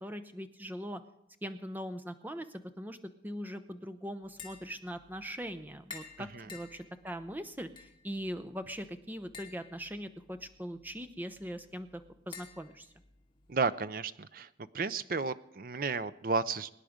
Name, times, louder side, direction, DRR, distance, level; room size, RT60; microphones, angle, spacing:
voice 1, 0.0-1.0 1.4-2.5 2.8-3.0 3.2-12.9, equal, 10° right, 10 dB, 0.7 m, -41 dB
Tap, 4.2-13.7, left 5 dB, 25° left, 2.3 m, -54 dB
voice 2, 13.5-14.5 14.7-16.7, right 4 dB, 50° right, 14 dB, 0.5 m, -32 dB
23.5 x 9.9 x 5.1 m, 0.82 s
head